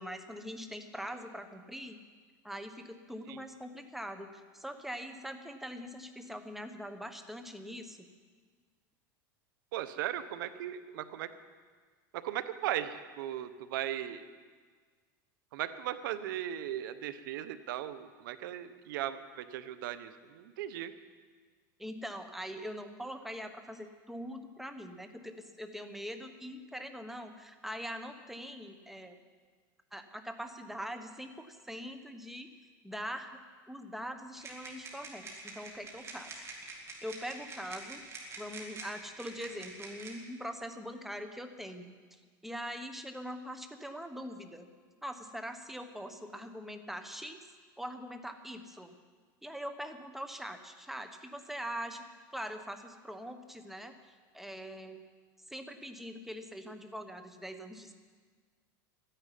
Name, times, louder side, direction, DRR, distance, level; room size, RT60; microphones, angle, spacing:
voice 1, 0.0-2.0 2.4-8.1 21.8-29.2 29.9-32.5 32.8-33.4 33.7-36.3 37.0-38.0 38.4-42.0 42.4-44.7 45.0-47.5 47.8-49.0 49.4-52.1 52.3-55.0 55.5-57.9, equal, ahead, 7 dB, 1.3 m, -42 dB
voice 2, 9.7-11.3 12.1-14.2 15.5-20.9, right 12 dB, 80° right, 12 dB, 1.0 m, -37 dB
sound 1, 34.4-40.1, right 3 dB, 25° right, 2.9 m, -46 dB
13.0 x 10.0 x 9.2 m, 1.6 s
supercardioid pair, 120°, 11 cm